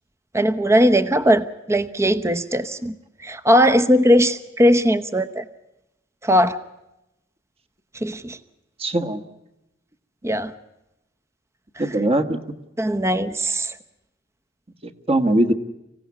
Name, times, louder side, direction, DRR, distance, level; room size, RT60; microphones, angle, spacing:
voice 1, 0.3-2.9 3.2-5.4 6.2-6.6 8.0-8.4 10.2-10.5 11.8-11.9 12.8-13.8, equal, 15° right, 12 dB, 0.9 m, -19 dB
voice 2, 8.8-9.2 11.8-12.4 14.8-15.5, right 1 dB, 30° right, 8 dB, 1.5 m, -21 dB
25.5 x 16.5 x 9.6 m, 0.91 s
head